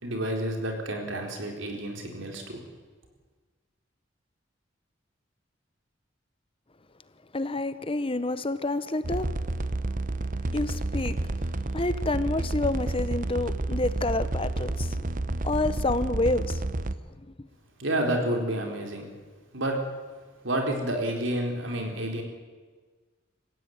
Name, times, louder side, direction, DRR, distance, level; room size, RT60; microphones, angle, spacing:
voice 1, 0.0-2.6 17.8-19.0 19.5-19.8 20.4-22.2, right 1 dB, 75° right, 4.3 m, -29 dB
voice 2, 7.3-9.3 10.5-11.2 11.7-16.6 17.2-17.5, left 2 dB, 30° left, 0.9 m, -29 dB
sound 1, 9.0-17.0, right 2 dB, 45° right, 0.9 m, -30 dB
25.5 x 15.5 x 9.6 m
head